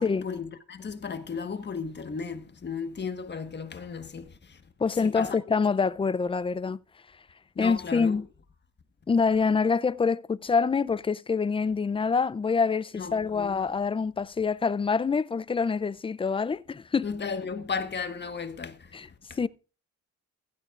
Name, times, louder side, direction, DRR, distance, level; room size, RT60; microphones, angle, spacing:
voice 1, 0.0-4.6 5.0-5.4 7.5-8.2 12.9-13.6 17.0-18.9 19.3-19.4, left 5 dB, 35° left, 1.4 m, -35 dB
voice 2, 4.8-6.8 7.6-8.3 9.1-17.1 18.9-19.1 19.4-19.5, left 5 dB, 20° left, 0.4 m, -26 dB
15.5 x 12.0 x 2.5 m
cardioid pair, 90°, 30 cm